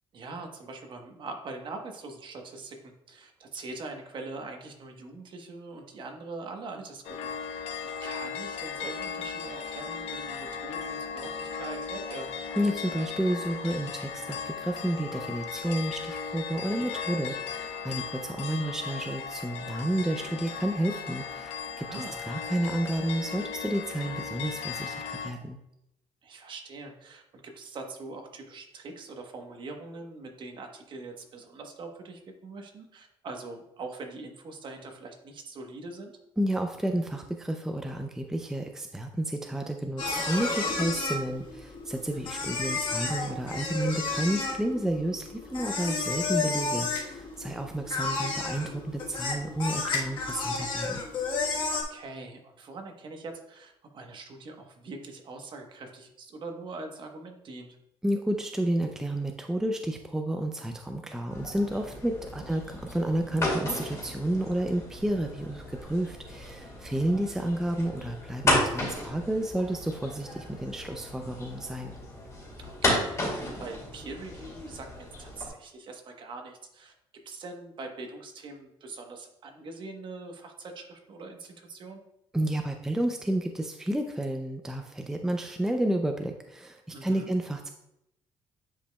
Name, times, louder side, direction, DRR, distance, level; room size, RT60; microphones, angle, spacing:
voice 1, 0.1-7.6 8.0-12.4 16.7-16.9 21.9-22.2 26.2-36.1 42.3-42.5 51.7-57.8 62.3-62.5 72.6-76.9 77.2-82.0 86.9-87.3, right 3 dB, 45° right, 3 dB, 1.1 m, -43 dB
sound 1, 7.0-25.3, left 6 dB, 80° left, 0.9 m, -37 dB
voice 2, 12.6-25.6 36.4-51.0 58.0-72.0 82.3-87.7, right 1 dB, 5° right, 4 dB, 0.5 m, -31 dB
sound 2, 40.0-51.8, left 4 dB, 50° left, 1.3 m, -32 dB
sound 3, 61.3-75.5, left 1 dB, 25° left, 2.4 m, -34 dB
9.8 x 5.1 x 2.3 m, 0.82 s
cardioid pair, 125°, 11 cm